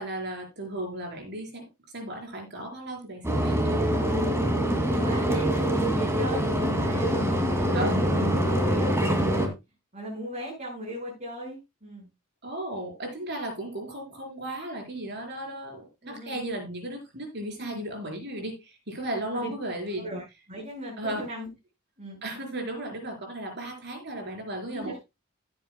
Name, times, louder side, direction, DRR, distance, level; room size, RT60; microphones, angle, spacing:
voice 1, 0.0-1.6 1.9-4.3 7.7-8.0 12.4-20.1 21.0-21.2 22.2-25.0, right 1 dB, 55° right, 3 dB, 4.4 m, -35 dB
sound 1, 3.2-9.5, equal, 15° right, 2.2 m, -24 dB
voice 2, 4.9-9.5 9.9-12.1 16.0-16.4 17.5-17.9 19.3-19.5 20.0-21.5 22.0-22.2 24.7-25.0, right 1 dB, 35° right, -5 dB, 5.0 m, -37 dB
16.0 x 8.6 x 2.2 m, 0.24 s
head